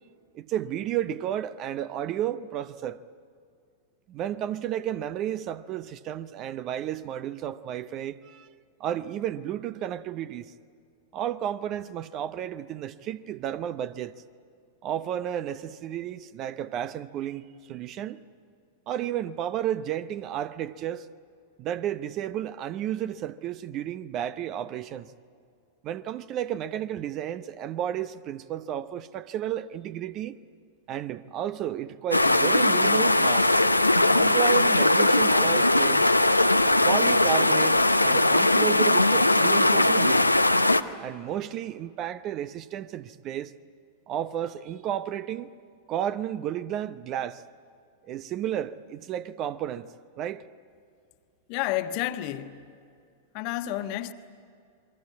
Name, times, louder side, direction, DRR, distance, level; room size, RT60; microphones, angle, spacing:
voice 1, 0.3-3.0 4.1-8.5 8.8-10.5 11.1-14.1 14.8-18.2 18.9-21.1 21.6-25.1 25.8-30.4 30.9-33.5 34.1-36.1 36.8-40.4 41.0-43.5 44.1-45.5 45.9-47.4 48.1-49.9 50.2-50.4, right 11 dB, 35° right, 0.8 m, -32 dB
sound 1, 32.1-40.8, left 2 dB, 85° left, 0.7 m, -20 dB
voice 2, 51.5-52.7 53.3-54.1, left 14 dB, 45° left, 1.3 m, -30 dB
28.5 x 22.5 x 8.5 m
figure-of-eight pair, 90°, 0 cm